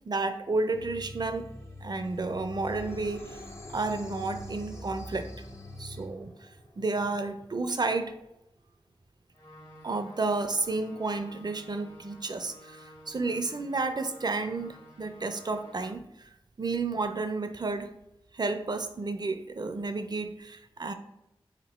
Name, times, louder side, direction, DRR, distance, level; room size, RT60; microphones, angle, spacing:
voice 1, 0.1-1.5 1.8-3.4 3.7-5.4 5.8-6.5 6.8-8.1 9.8-16.3 16.6-17.9 18.3-20.9, right 3 dB, 45° right, 8 dB, 0.4 m, -31 dB
sound 1, 0.7-6.1, left 1 dB, 25° left, 0.6 m, -44 dB
sound 2, 2.7-8.3, left 1 dB, 85° left, 1.0 m, -50 dB
sound 3, 9.3-15.9, equal, 60° left, 1.1 m, -52 dB
4.0 x 2.9 x 4.2 m, 0.86 s
wide cardioid pair, 65°, 10 cm